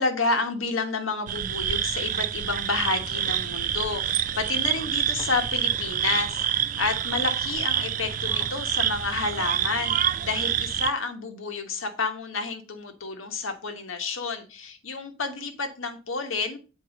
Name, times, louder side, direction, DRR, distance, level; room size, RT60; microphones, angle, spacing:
voice 1, 0.0-16.6, left 3 dB, 75° left, 6 dB, 1.4 m, -30 dB
sound 1, 1.3-10.9, right 10 dB, 40° right, 0.3 m, -27 dB
sound 2, 2.9-9.5, right 1 dB, 15° left, 2.8 m, -48 dB
7.8 x 4.6 x 5.2 m, 0.32 s
head